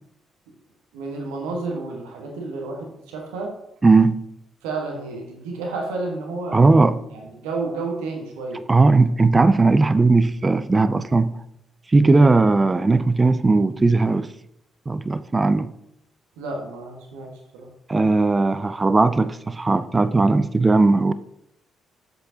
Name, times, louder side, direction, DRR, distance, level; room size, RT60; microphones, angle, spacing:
voice 1, 0.9-3.5 4.6-8.6 12.0-12.2 16.4-17.7, right 3 dB, 70° right, 1.4 m, -31 dB
voice 2, 3.8-4.2 6.5-7.0 8.7-11.4 11.9-14.3 14.9-15.7 17.9-21.1, right 3 dB, 25° right, 0.4 m, -17 dB
8.0 x 7.6 x 2.8 m
figure-of-eight pair, 40°, 0 cm